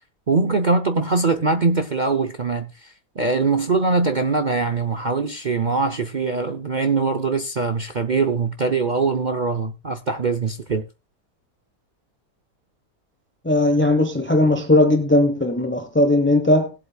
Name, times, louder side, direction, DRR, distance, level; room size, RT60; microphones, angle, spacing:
voice 1, 0.3-10.8, right 4 dB, 65° right, 0.4 m, -22 dB
voice 2, 13.4-16.7, left 1 dB, 10° left, 0.6 m, -18 dB
20.0 x 8.0 x 2.3 m
omnidirectional pair, 1.9 m